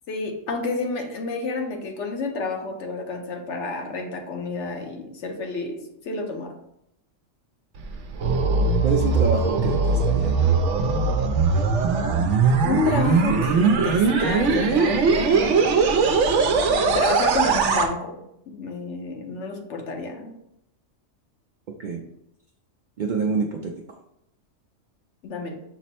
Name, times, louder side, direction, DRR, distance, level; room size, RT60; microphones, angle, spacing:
voice 1, 0.1-6.6 12.6-15.7 16.7-18.2 18.5-20.3 25.2-25.6, left 3 dB, 65° left, 3 dB, 1.0 m, -30 dB
sound 1, 7.8-17.9, right 4 dB, 70° right, 0.9 m, -20 dB
voice 2, 8.8-10.4 21.8-22.0 23.0-23.7, right 4 dB, 85° right, 0 dB, 0.4 m, -26 dB
6.0 x 2.0 x 4.2 m, 0.79 s
omnidirectional pair, 1.4 m